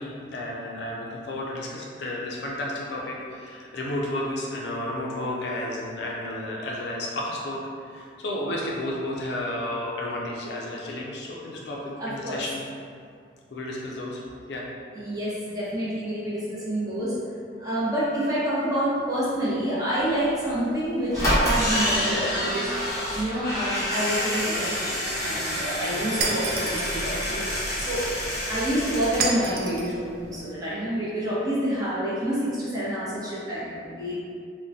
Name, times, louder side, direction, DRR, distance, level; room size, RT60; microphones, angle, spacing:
voice 1, 0.0-11.8 12.0-12.6 13.5-14.6, left 1 dB, 60° left, -3 dB, 0.4 m, -32 dB
voice 2, 12.0-12.5 14.9-17.1 17.6-22.7 23.1-27.4 27.8-28.0 28.5-34.1, equal, 20° right, -10 dB, 0.7 m, -28 dB
sound 1, 20.5-20.6 21.1-29.3 29.6-29.7 29.9-30.0, equal, 15° left, 0.7 m, -27 dB
Shatter, 26.2-27.0 29.2-29.9, right 4 dB, 50° right, 0.3 m, -28 dB
3.8 x 2.1 x 2.6 m, 2.3 s
head